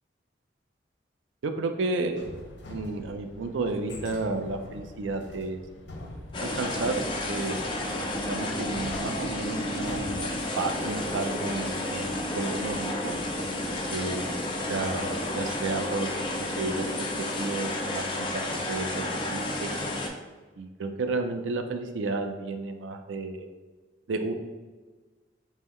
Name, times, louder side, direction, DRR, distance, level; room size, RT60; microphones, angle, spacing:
voice 1, 1.4-2.3 2.7-5.6 6.4-7.0 7.3-7.7 8.2-10.3 10.6-13.1 13.9-14.4 14.7-17.1 17.4-19.1 19.3-19.7 20.6-23.5 24.1-24.3, right 3 dB, 90° right, 6 dB, 0.4 m, -32 dB
sound 1, 2.2-13.9, left 1 dB, 75° left, 0.6 m, -45 dB
sound 2, 6.3-20.1, left 1 dB, 25° left, 0.4 m, -31 dB
5.5 x 2.1 x 3.0 m, 1.3 s
head